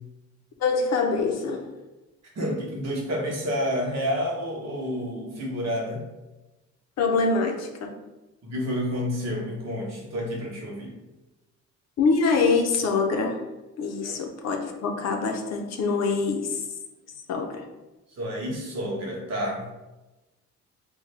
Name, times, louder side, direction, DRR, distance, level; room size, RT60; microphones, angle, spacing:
voice 1, 0.6-1.7 7.0-7.9 12.0-13.4 13.8-16.6 17.3-17.7, left 4 dB, 60° left, 3 dB, 0.6 m, -24 dB
voice 2, 2.3-6.0 8.4-10.9 14.0-14.2 18.2-19.6, equal, 60° right, -2 dB, 1.1 m, -29 dB
3.6 x 2.3 x 3.2 m, 1.1 s
cardioid pair, 90°, 30 cm